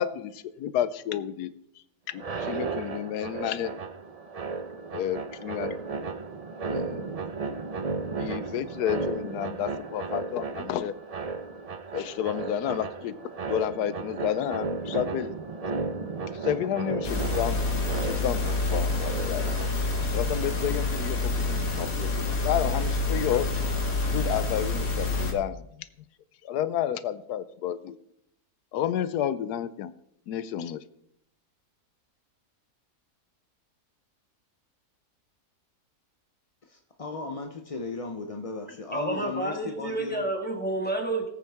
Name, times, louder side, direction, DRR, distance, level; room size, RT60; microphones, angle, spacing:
voice 1, 0.0-1.5 2.1-3.7 4.9-5.8 6.7-7.1 8.2-11.0 11.9-15.3 15.6-15.8 16.3-17.7 18.0-19.5 20.0-23.6 24.0-25.9 26.4-28.0 28.7-29.9 30.3-30.8, left 10 dB, 80° left, 1.2 m, -31 dB
sound 1, 2.1-20.0, right 4 dB, 40° right, 0.5 m, -34 dB
sound 2, 17.0-25.3, left 3 dB, 60° left, 2.2 m, -28 dB
voice 2, 36.7-40.3, left 3 dB, 40° left, 0.5 m, -36 dB
voice 3, 38.9-41.3, right 2 dB, 5° left, 1.6 m, -29 dB
18.5 x 8.5 x 3.5 m
omnidirectional pair, 1.7 m